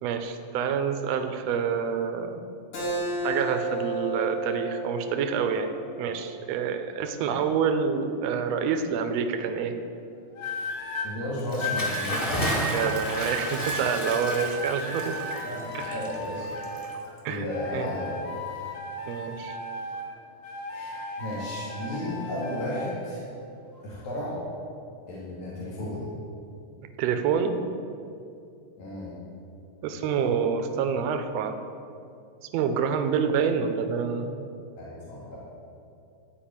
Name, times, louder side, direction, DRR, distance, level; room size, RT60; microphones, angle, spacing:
voice 1, 0.0-2.4 3.2-5.7 6.0-9.7 12.7-15.1 15.7-15.9 17.2-17.5 17.7-17.9 19.1-19.6 27.0-27.6 29.8-31.6 32.5-34.3, right 6 dB, 75° right, 7 dB, 1.6 m, -27 dB
Keyboard (musical), 2.7-7.9, right 2 dB, 65° left, 3.9 m, -33 dB
sound 1, 10.4-11.1 11.6-17.1 17.5-20.1 20.4-23.0 23.7-24.0, left 1 dB, 45° left, 1.8 m, -35 dB
voice 2, 11.0-12.6 15.4-16.5 17.3-18.1 20.7-23.2 23.8-24.4 25.1-26.0 28.8-29.2 34.8-35.4, left 1 dB, 90° left, -8 dB, 3.9 m, -34 dB
Bathtub (filling or washing) / Splash splatter, 11.4-17.3, equal, 15° left, 1.1 m, -33 dB
13.5 x 5.3 x 8.8 m, 2.5 s
omnidirectional pair, 3.9 m